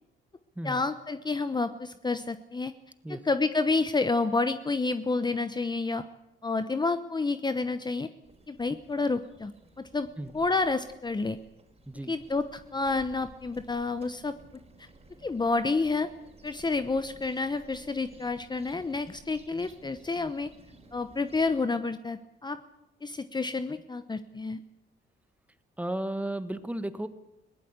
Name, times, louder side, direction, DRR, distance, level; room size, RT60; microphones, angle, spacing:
voice 1, 0.6-2.7 3.2-6.0 6.4-8.1 8.5-9.5 9.8-10.1 10.3-11.4 12.1-14.4 14.8-14.9 15.2-16.1 16.4-20.5 20.9-22.6 23.0-24.6, left 3 dB, 20° left, 11 dB, 0.9 m, -29 dB
sound 1, 8.2-21.7, right 2 dB, 30° right, 4.3 m, -55 dB
voice 2, 11.9-12.2 25.8-27.1, right 1 dB, 5° right, 11 dB, 1.5 m, -34 dB
21.0 x 17.5 x 8.2 m, 0.92 s
cardioid pair, 90°, 20 cm